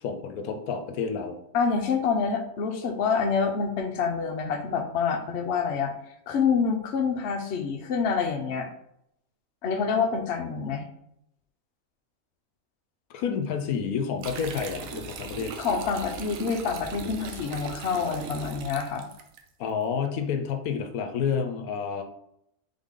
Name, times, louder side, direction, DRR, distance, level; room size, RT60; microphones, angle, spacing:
voice 1, 0.0-1.4 13.1-15.6 19.6-22.0, left 6 dB, 80° left, 6 dB, 1.0 m, -29 dB
voice 2, 1.5-5.9 6.3-8.7 9.6-10.8 15.6-19.0, left 5 dB, 60° left, 4 dB, 0.8 m, -27 dB
sound 1, 14.2-19.4, right 5 dB, 70° right, 1.0 m, -39 dB
3.8 x 3.6 x 3.7 m, 0.76 s
omnidirectional pair, 1.5 m